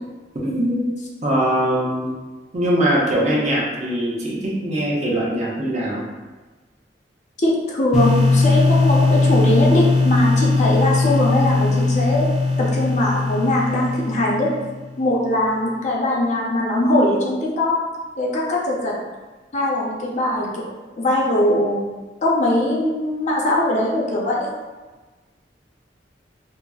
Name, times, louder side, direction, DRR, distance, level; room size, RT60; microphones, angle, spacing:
voice 1, 0.3-0.9 1.2-2.1 2.5-6.1, right 1 dB, 40° right, -5 dB, 0.7 m, -21 dB
voice 2, 7.4-12.3 12.6-14.5 15.0-17.7 18.2-18.9 19.5-20.6 21.0-21.8 22.2-24.5, left 1 dB, 40° left, -4 dB, 0.5 m, -20 dB
sound 1, 7.9-14.7, left 3 dB, 5° right, 0.6 m, -19 dB
3.9 x 2.0 x 2.3 m, 1.2 s
head